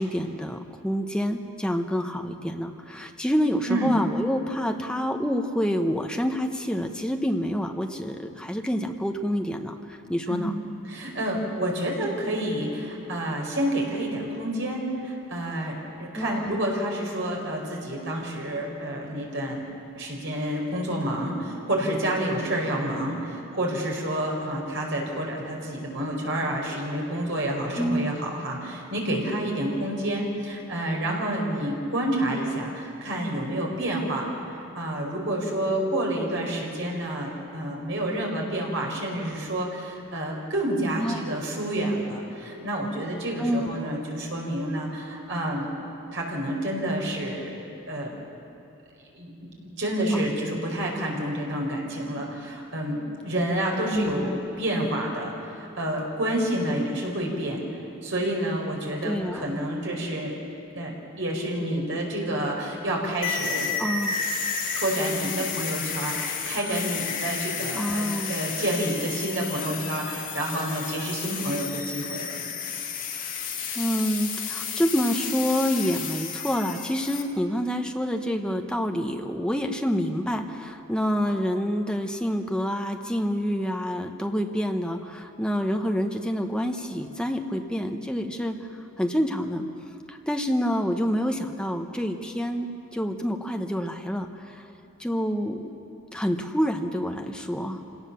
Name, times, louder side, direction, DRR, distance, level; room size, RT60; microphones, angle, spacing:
voice 1, 0.0-10.5 16.1-16.6 27.7-28.1 41.0-41.2 43.4-43.7 50.1-50.3 53.9-54.4 59.0-59.6 63.8-64.2 67.7-68.4 73.7-88.6 89.0-89.7 90.1-94.7 95.0-95.6 96.1-97.8, equal, 5° left, 4 dB, 1.0 m, -27 dB
voice 2, 10.8-19.6 20.0-34.3 34.7-45.7 46.1-47.5 47.9-48.1 49.1-57.6 58.0-60.3 60.7-63.7 64.7-72.4, right 1 dB, 65° right, -1 dB, 4.6 m, -29 dB
sound 1, 63.2-77.2, left 6 dB, 40° left, 1.8 m, -32 dB
27.0 x 18.0 x 7.0 m, 2.9 s
head